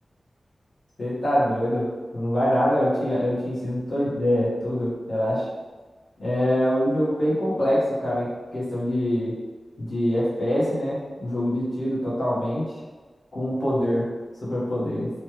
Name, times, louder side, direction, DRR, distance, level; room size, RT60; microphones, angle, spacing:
voice 1, 1.0-5.5 6.2-9.4 9.8-12.7 13.3-14.2 14.4-15.1, equal, 80° left, -9 dB, 1.2 m, -24 dB
3.1 x 2.3 x 3.1 m, 1.4 s
cardioid pair, 55°, 0 cm